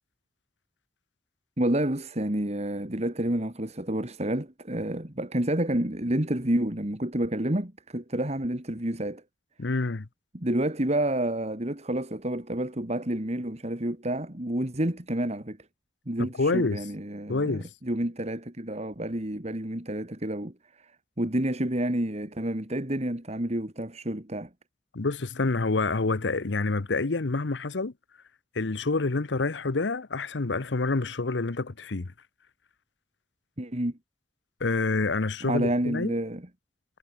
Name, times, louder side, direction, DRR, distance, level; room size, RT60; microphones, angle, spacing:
voice 1, 1.6-9.2 10.3-15.6 16.1-20.9 21.2-24.5 33.6-34.0 35.4-36.5, right 1 dB, 40° right, 2.5 m, -29 dB
voice 2, 9.6-10.1 16.4-16.8 17.3-17.7 24.9-27.9 28.5-32.1 34.6-36.1, left 3 dB, 85° left, 0.9 m, -27 dB
head